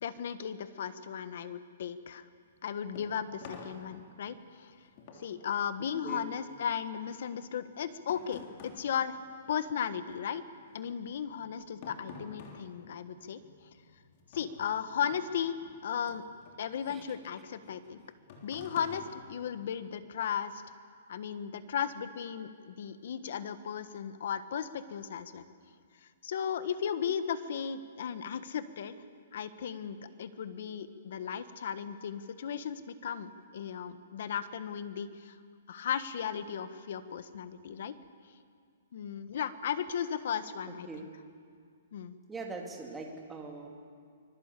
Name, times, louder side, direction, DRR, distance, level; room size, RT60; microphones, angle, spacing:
voice 1, 0.0-2.2 2.6-4.7 5.2-9.2 9.5-10.4 10.7-13.4 14.3-15.6 15.8-16.2 16.6-18.0 18.4-20.5 21.1-25.4 26.2-28.9 29.3-35.4 35.7-38.0 38.9-41.1 41.9-42.1, left 8 dB, 55° left, 12 dB, 1.4 m, -36 dB
sound 1, 2.5-10.1 10.4-20.1, left 4 dB, 35° left, 3.3 m, -51 dB
voice 2, 42.3-43.7, right 3 dB, 5° right, 0 dB, 2.5 m, -41 dB
24.5 x 22.5 x 8.4 m, 2.2 s
hypercardioid pair, 170°, 0 cm